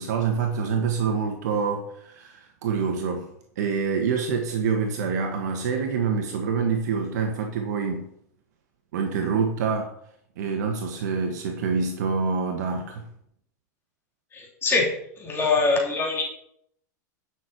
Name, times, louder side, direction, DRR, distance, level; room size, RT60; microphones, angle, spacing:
voice 1, 0.0-8.1 8.9-9.9 10.4-13.0, right 5 dB, 75° right, 1.5 m, -26 dB
voice 2, 14.3-14.9 15.2-16.2, left 3 dB, 25° left, 2.9 m, -23 dB
9.9 x 6.2 x 4.6 m
supercardioid pair, 125°, 9 cm